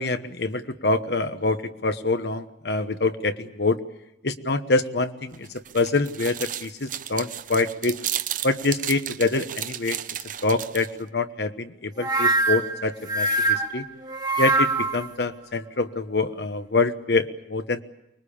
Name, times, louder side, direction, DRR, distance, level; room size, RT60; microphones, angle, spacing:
voice 1, 0.0-3.8 4.2-5.5 5.7-8.0 8.4-10.0 10.4-13.8 14.4-17.8, left 3 dB, 65° left, 9 dB, 1.1 m, -25 dB
sound 1, 5.3-11.0, right 11 dB, 45° right, 0.9 m, -33 dB
sound 2, 12.0-15.1, right 2 dB, 25° right, 1.5 m, -23 dB
24.5 x 21.5 x 8.7 m, 0.84 s
head